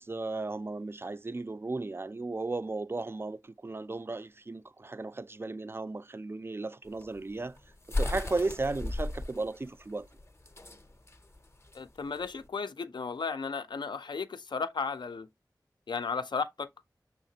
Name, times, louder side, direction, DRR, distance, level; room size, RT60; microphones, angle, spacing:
voice 1, 0.0-7.6 8.0-10.1, right 3 dB, 30° right, 0.3 m, -35 dB
sound 1, 6.9-12.4, left 1 dB, 35° left, 0.5 m, -36 dB
voice 2, 11.7-15.3 15.9-16.7, left 5 dB, 90° left, 0.4 m, -34 dB
5.8 x 3.3 x 2.7 m
wide cardioid pair, 45°, 7 cm